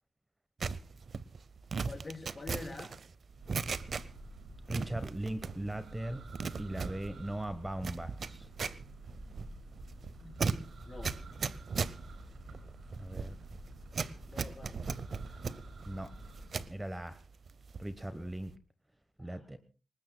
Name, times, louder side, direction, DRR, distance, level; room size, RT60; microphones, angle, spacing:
sound 1, 0.6-4.4 4.7-5.8 6.1-16.8 17.2-18.0 18.3-18.6, right 5 dB, 60° right, 0.7 m, -38 dB
voice 1, 1.8-3.0 10.2-10.5 10.8-11.2 14.3-14.9 18.1-18.3 19.2-19.5, left 3 dB, 35° left, 4 dB, 3.5 m, -46 dB
sound 2, 3.3-16.6, right 2 dB, 80° right, 6.0 m, -49 dB
voice 2, 4.7-6.3 6.6-8.5 13.0-13.4 15.8-16.1 16.7-17.2 17.8-18.5 19.2-19.6, right 1 dB, 15° right, 11 dB, 1.1 m, -39 dB
26.0 x 20.0 x 2.2 m, 0.34 s
cardioid pair, 85°, 0 cm